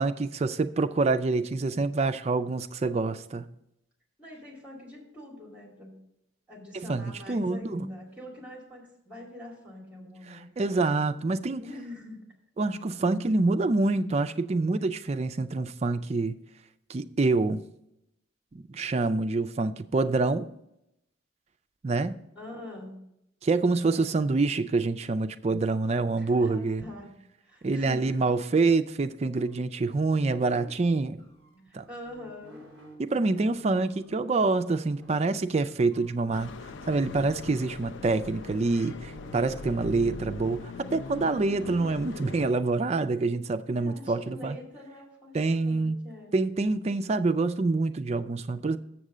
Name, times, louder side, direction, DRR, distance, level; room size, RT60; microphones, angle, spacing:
voice 1, 0.0-3.5 6.7-7.8 10.6-11.7 12.6-16.4 16.9-17.6 18.5-20.5 21.8-22.2 23.4-26.8 27.6-31.2 31.7-31.9 33.0-36.5 36.9-44.6 45.3-46.0 46.3-48.8, right 3 dB, 35° right, 0.3 m, -26 dB
voice 2, 4.2-6.0 6.5-10.5 11.6-12.2 22.3-22.9 26.2-27.1 27.4-28.0 31.6-32.6 43.8-45.4 45.7-46.4, left 1 dB, 5° right, 2.2 m, -44 dB
sound 1, 29.4-34.1 34.8-39.7, right 2 dB, 15° left, 3.0 m, -52 dB
sound 2, 36.3-42.5, left 4 dB, 70° left, 0.4 m, -41 dB
7.3 x 6.6 x 4.9 m
head